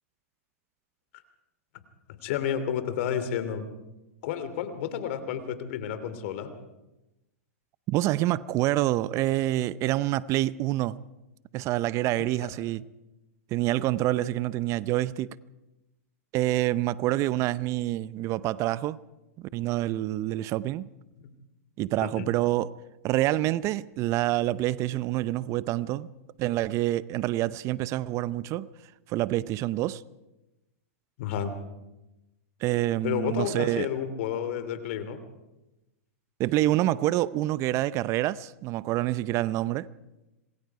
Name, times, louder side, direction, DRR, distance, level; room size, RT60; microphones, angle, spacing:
voice 1, 2.2-3.6 4.2-6.5 12.2-12.5 21.2-21.3 22.0-22.3 31.2-31.5 33.0-35.2, left 9 dB, 60° left, 2.9 m, -31 dB
voice 2, 7.9-11.0 11.5-12.8 13.5-15.4 16.3-19.0 19.5-20.9 21.8-22.7 23.0-26.1 26.4-28.7 29.1-30.0 32.6-33.9 36.4-39.9, right 15 dB, 40° right, 0.6 m, -27 dB
26.5 x 21.0 x 4.8 m
hypercardioid pair, 110°, 8 cm